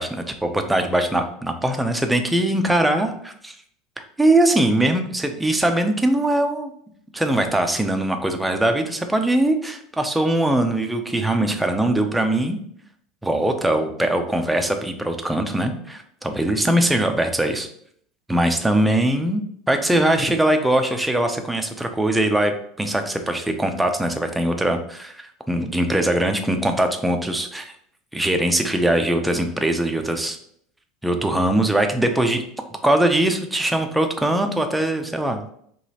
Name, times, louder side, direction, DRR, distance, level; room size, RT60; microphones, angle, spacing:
voice 1, 0.0-3.5 4.2-6.7 7.1-12.6 13.2-17.7 18.3-19.4 19.7-27.7 28.1-30.4 31.0-32.4 32.8-35.4, right 1 dB, 5° right, 5 dB, 0.4 m, -21 dB
4.9 x 3.1 x 2.8 m, 0.66 s
supercardioid pair, 155°, 0 cm